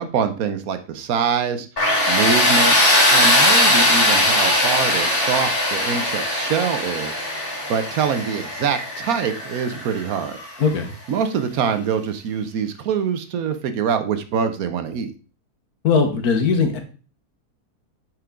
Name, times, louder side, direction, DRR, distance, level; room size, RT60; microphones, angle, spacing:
voice 1, 0.0-1.7 2.1-2.8 3.1-7.2 7.7-10.4 11.1-15.1, right 7 dB, 70° right, 10 dB, 1.1 m, -24 dB
Tools, 1.8-10.5, left 1 dB, 35° left, 1.9 m, -19 dB
voice 2, 10.6-10.9 15.8-16.8, left 5 dB, 70° left, 6 dB, 1.6 m, -19 dB
8.3 x 4.6 x 3.7 m, 0.36 s
omnidirectional pair, 1.7 m